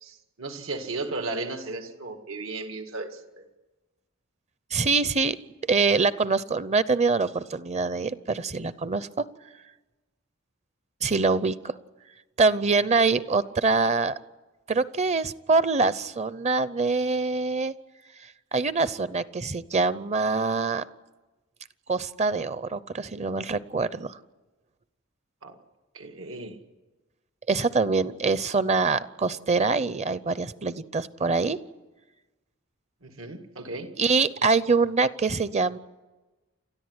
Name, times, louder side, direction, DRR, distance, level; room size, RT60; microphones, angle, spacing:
voice 1, 0.0-3.5 25.4-25.6 25.9-26.6 33.0-33.9, right 3 dB, 80° right, 6 dB, 2.1 m, -35 dB
voice 2, 4.7-5.4 5.7-9.3 11.0-11.7 12.4-14.2 14.7-17.7 18.5-20.8 21.9-24.2 27.5-31.6 34.0-35.8, right 4 dB, 35° right, 16 dB, 0.7 m, -24 dB
30.0 x 13.5 x 9.6 m, 1.2 s
head